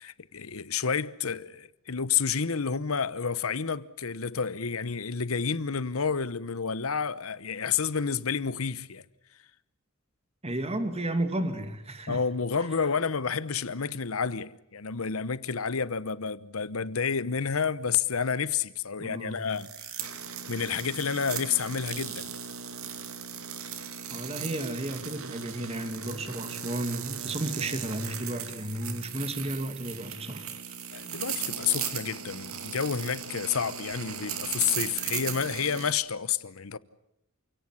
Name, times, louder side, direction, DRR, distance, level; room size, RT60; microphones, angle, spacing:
voice 1, 0.0-9.0 12.1-20.1 20.5-22.3 30.9-36.8, left 6 dB, 90° left, 1.0 m, -30 dB
voice 2, 10.4-12.2 19.0-19.5 24.1-30.8, right 1 dB, 30° right, 2.5 m, -33 dB
sound 1, 19.5-35.9, right 8 dB, 90° right, 2.5 m, -37 dB
28.0 x 17.5 x 9.8 m
head